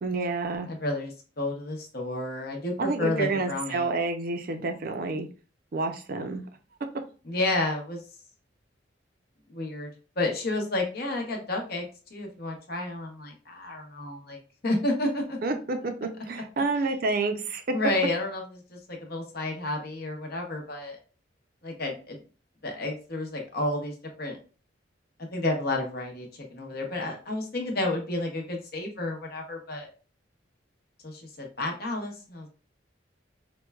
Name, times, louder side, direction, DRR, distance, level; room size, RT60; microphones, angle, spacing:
voice 1, 0.0-0.7 2.8-5.3 5.7-6.4 15.4-17.6, right 3 dB, 50° right, 6 dB, 0.4 m, -29 dB
voice 2, 0.7-3.9 7.3-8.0 9.5-9.9 10.2-14.4 14.6-15.4 17.7-18.4 18.7-21.0 21.6-22.2 22.6-24.4 25.3-29.9 31.0-32.5, left 2 dB, 55° left, 1 dB, 0.8 m, -31 dB
4.4 x 2.2 x 2.2 m, 0.36 s
head